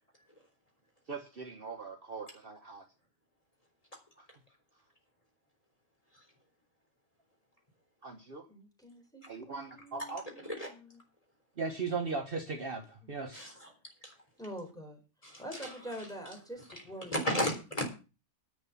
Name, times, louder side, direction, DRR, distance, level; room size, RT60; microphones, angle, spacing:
voice 1, 1.1-2.9 4.2-4.3 8.0-8.5 9.3-10.2 11.6-13.5, right 4 dB, 45° right, 5 dB, 1.2 m, -39 dB
voice 2, 8.5-11.0 14.4-15.0 15.4-17.2, equal, 5° left, 2 dB, 4.3 m, -45 dB
voice 3, 13.3-13.7 14.0-14.1 15.2-15.7 17.1-17.9, equal, 25° left, 2 dB, 3.7 m, -33 dB
11.0 x 7.2 x 7.1 m, 0.32 s
omnidirectional pair, 1.4 m